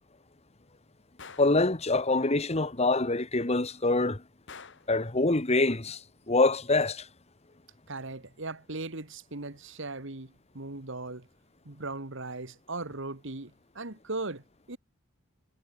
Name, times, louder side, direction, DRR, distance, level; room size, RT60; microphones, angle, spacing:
Gunshot gunfire, 1.2-1.6 4.5-5.0, left 5 dB, 60° left, 3.5 m, -47 dB
voice 1, 1.4-4.2 4.9-6.0 6.3-7.0, left 2 dB, 30° left, 1.4 m, -25 dB
voice 2, 7.9-11.3 11.7-14.8, right 3 dB, 60° right, 1.9 m, -38 dB
head